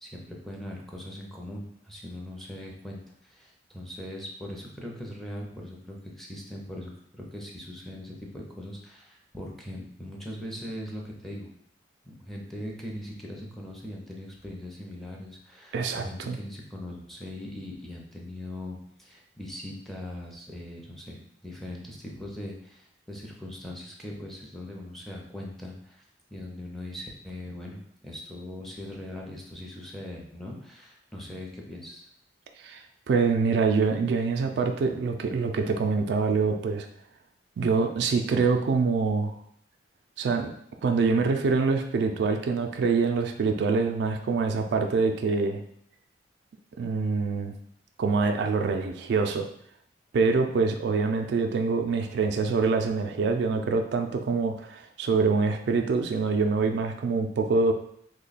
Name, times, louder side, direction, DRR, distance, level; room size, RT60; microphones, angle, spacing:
voice 1, 0.0-11.5 12.0-26.0 26.3-32.1, left 1 dB, ahead, -2 dB, 0.5 m, -40 dB
voice 2, 15.7-16.4 32.6-36.9 37.6-39.4 40.2-40.5 40.8-45.6 46.8-47.5 48.0-49.5 50.1-57.7, right 4 dB, 65° right, 5 dB, 0.3 m, -25 dB
3.0 x 2.2 x 3.9 m, 0.68 s
head